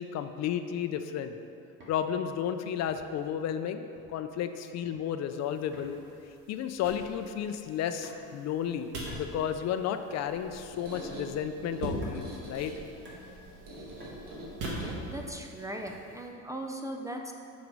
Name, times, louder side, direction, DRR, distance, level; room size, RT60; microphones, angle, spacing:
voice 1, 0.0-1.3 1.9-6.0 6.5-12.7, left 9 dB, 50° left, 9 dB, 0.5 m, -33 dB
golpes en madera, 1.8-2.0 2.9-3.2 3.9-4.3 4.6-5.0 5.7-5.9 6.9-7.1 8.0-8.4 9.1-9.3 10.1-10.3 10.9-11.1 12.0-12.2 13.0-13.2 14.0-14.1 14.8-15.0 15.9-16.1, equal, 35° right, 2.2 m, -51 dB
sound 1, 5.4-16.3, right 1 dB, 75° right, 2.0 m, -46 dB
Squeak, 10.2-15.4, right 1 dB, 55° right, 1.9 m, -41 dB
voice 2, 14.8-17.3, right 1 dB, 10° right, 2 dB, 0.4 m, -39 dB
7.7 x 6.2 x 5.3 m, 2.6 s
cardioid pair, 145°, 33 cm